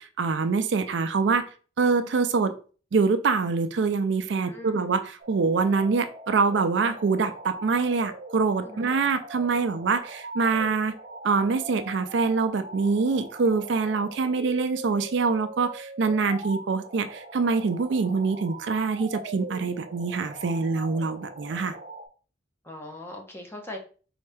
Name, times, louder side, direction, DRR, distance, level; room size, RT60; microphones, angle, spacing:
voice 1, 0.0-1.5 1.8-2.5 2.9-10.9 11.2-21.7, right 4 dB, 70° right, 10 dB, 0.4 m, -25 dB
voice 2, 4.3-4.9 8.6-9.0 22.6-23.8, left 1 dB, 10° left, 1 dB, 0.8 m, -40 dB
sound 1, 5.2-22.1, right 1 dB, 45° right, 0.8 m, -41 dB
4.2 x 2.7 x 3.4 m, 0.38 s
head